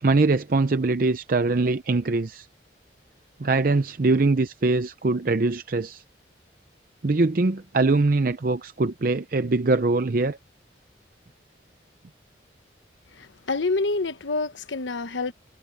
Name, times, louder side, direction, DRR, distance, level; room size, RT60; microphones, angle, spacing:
voice 1, 0.0-2.5 3.4-6.0 7.0-10.4, right 3 dB, 50° right, 0.6 m, -22 dB
voice 2, 13.1-15.3, left 3 dB, 85° left, 1.1 m, -27 dB
head